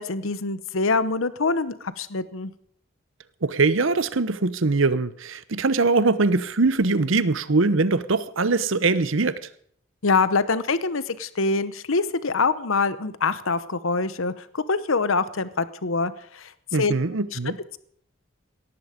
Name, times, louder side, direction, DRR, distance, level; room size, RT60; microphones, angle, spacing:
voice 1, 0.0-2.5 10.0-16.5 16.8-16.9 17.3-17.4, left 4 dB, 80° left, 0.9 m, -24 dB
voice 2, 3.4-9.5 16.7-17.6, right 3 dB, 75° right, 0.9 m, -22 dB
18.0 x 14.0 x 5.1 m
head